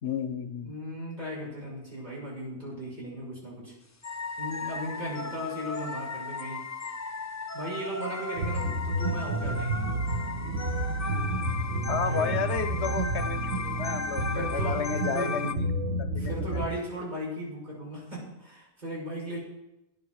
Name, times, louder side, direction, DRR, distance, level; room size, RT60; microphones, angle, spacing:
voice 1, 0.0-0.7 11.9-13.5 13.8-15.7 16.0-16.3, left 6 dB, 80° left, 10 dB, 1.2 m, -32 dB
voice 2, 0.6-3.8 4.4-6.7 7.5-9.9 12.1-12.3 14.3-14.8 15.1-15.4 16.2-19.4, equal, 40° right, -6 dB, 7.2 m, -37 dB
sound 1, 4.0-15.5, left 4 dB, 25° left, 0.4 m, -36 dB
sound 2, 8.3-16.7, right 2 dB, 75° right, 1.4 m, -30 dB
19.0 x 10.5 x 4.8 m, 0.89 s
omnidirectional pair, 1.1 m